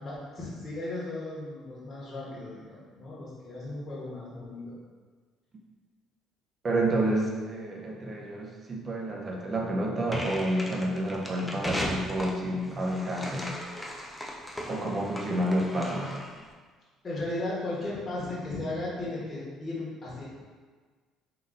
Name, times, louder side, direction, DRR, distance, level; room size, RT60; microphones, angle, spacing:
voice 1, 0.0-4.8 17.0-20.2, left 2 dB, 30° left, -7 dB, 1.2 m, -36 dB
voice 2, 6.6-13.6 14.6-16.2, right 1 dB, 30° right, -1 dB, 0.7 m, -29 dB
sound 1, 10.1-16.4, equal, 5° left, 0.6 m, -37 dB
3.8 x 2.6 x 3.8 m, 1.5 s
cardioid pair, 110°, 0 cm